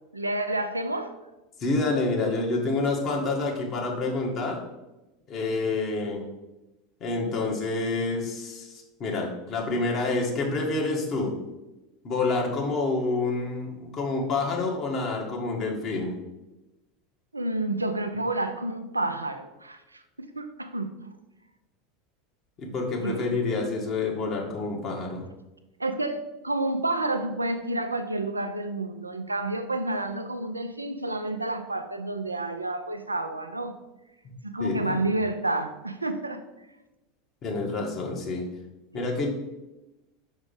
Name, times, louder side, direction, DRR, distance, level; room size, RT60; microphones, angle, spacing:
voice 1, 0.1-1.2 17.3-20.9 23.0-23.3 25.8-33.8 34.4-36.7 38.9-39.1, right 2 dB, 85° right, 8 dB, 0.4 m, -30 dB
voice 2, 1.6-4.6 5.3-6.2 7.0-11.3 12.0-16.2 22.6-25.2 34.6-35.0 37.4-38.4 38.9-39.3, left 3 dB, 35° left, -1 dB, 1.6 m, -28 dB
6.1 x 3.6 x 5.4 m, 1.0 s
figure-of-eight pair, 80°, 0 cm